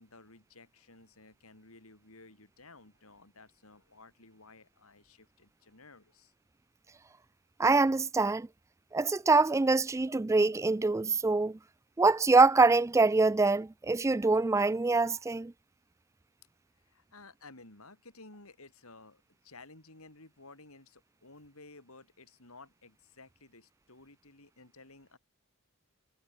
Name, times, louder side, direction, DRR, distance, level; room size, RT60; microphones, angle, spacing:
voice 1, 0.0-6.3 16.8-25.2, left 3 dB, 70° left, 5.1 m, -55 dB
voice 2, 7.6-8.5 8.9-11.6 12.0-15.5, right 3 dB, 15° right, 0.3 m, -25 dB
head